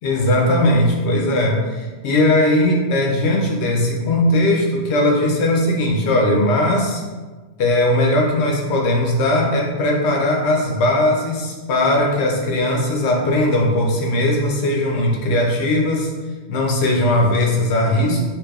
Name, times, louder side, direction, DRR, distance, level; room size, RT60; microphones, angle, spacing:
voice 1, 0.0-7.0 7.6-16.1 16.5-18.2, left 1 dB, 70° left, -1 dB, 0.9 m, -18 dB
3.3 x 2.9 x 2.3 m, 1.3 s
omnidirectional pair, 1.2 m